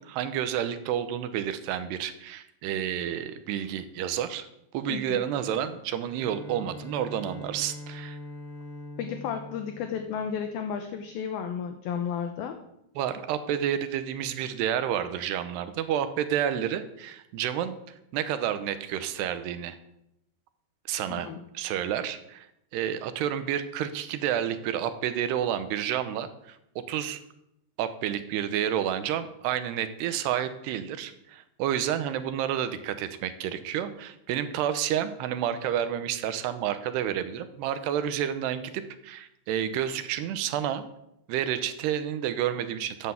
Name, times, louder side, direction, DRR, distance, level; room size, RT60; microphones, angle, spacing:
voice 1, 0.0-4.5 4.7-8.2 13.0-17.8 18.1-19.8 20.9-21.3 21.5-22.5 22.7-27.2 27.8-40.8 41.3-43.1, right 10 dB, 75° right, 11 dB, 2.9 m, -30 dB
voice 2, 4.9-5.2 9.0-12.6 21.1-21.4, left 7 dB, 70° left, 6 dB, 2.5 m, -33 dB
Bowed string instrument, 6.0-10.9, left 1 dB, 90° left, 7.0 m, -43 dB
14.0 x 9.9 x 7.1 m, 0.82 s
omnidirectional pair, 5.1 m